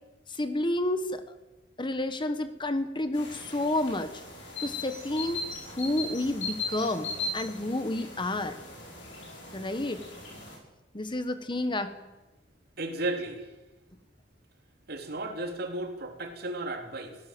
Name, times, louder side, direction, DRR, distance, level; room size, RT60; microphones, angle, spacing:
voice 1, 0.3-1.4 1.8-4.1 4.6-5.4 5.7-8.6 9.5-10.1 10.9-11.9, left 1 dB, 25° left, 10 dB, 1.3 m, -30 dB
sound 1, 3.1-10.6, left 2 dB, 85° left, 7.6 m, -38 dB
voice 2, 12.8-13.5 14.9-17.2, right 2 dB, 55° right, 4 dB, 3.6 m, -34 dB
24.0 x 17.0 x 7.9 m, 1.1 s
head